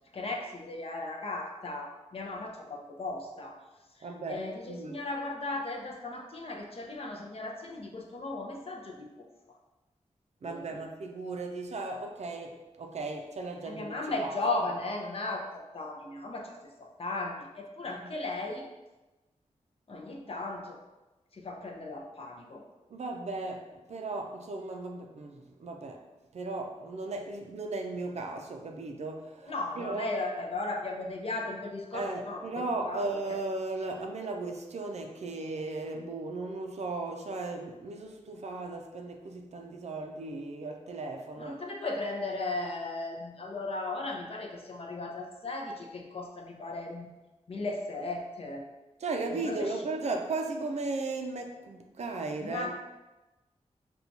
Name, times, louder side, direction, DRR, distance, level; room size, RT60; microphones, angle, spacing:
voice 1, 0.1-3.6 4.0-9.1 10.4-10.8 13.6-18.6 19.9-20.8 21.3-22.6 29.5-33.2 41.4-47.1 47.5-48.6 49.3-49.8 52.4-52.7, left 2 dB, 55° left, 1 dB, 0.5 m, -36 dB
voice 2, 4.0-5.0 10.4-14.4 17.8-18.0 22.9-26.0 26.3-30.1 31.9-41.6 49.0-52.7, right 3 dB, 65° right, 3 dB, 0.4 m, -36 dB
4.3 x 2.3 x 2.6 m, 1.1 s
wide cardioid pair, 120°, 12 cm